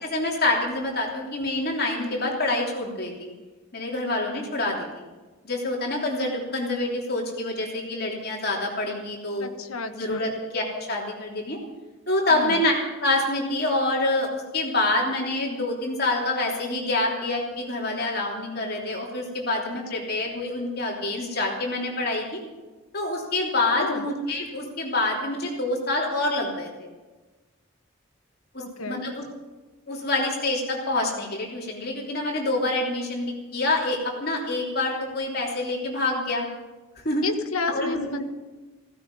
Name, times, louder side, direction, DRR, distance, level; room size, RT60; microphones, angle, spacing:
voice 1, 0.0-3.3 3.7-5.1 5.4-9.5 9.9-11.6 12.1-12.7 13.0-22.4 22.9-26.7 28.5-29.2 29.9-36.5 37.0-37.2 37.7-38.2, left 2 dB, 45° left, -1 dB, 3.3 m, -26 dB
voice 2, 1.9-2.3 9.4-10.2 12.3-12.6 23.7-24.0 28.6-29.0 37.2-38.2, left 3 dB, 85° left, 7 dB, 1.4 m, -31 dB
16.5 x 15.5 x 5.5 m, 1.2 s
head